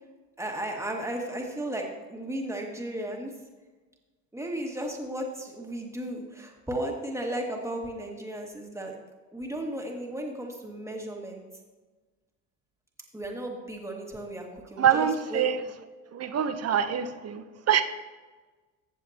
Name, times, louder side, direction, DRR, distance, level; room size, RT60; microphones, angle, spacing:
voice 1, 0.4-3.3 4.3-9.0 9.3-11.4 13.1-15.5, right 1 dB, 5° right, 0 dB, 2.1 m, -35 dB
voice 2, 14.8-15.6 16.1-17.8, right 9 dB, 35° right, 10 dB, 0.9 m, -25 dB
14.5 x 7.4 x 2.9 m, 1.3 s
hypercardioid pair, 80°, 42 cm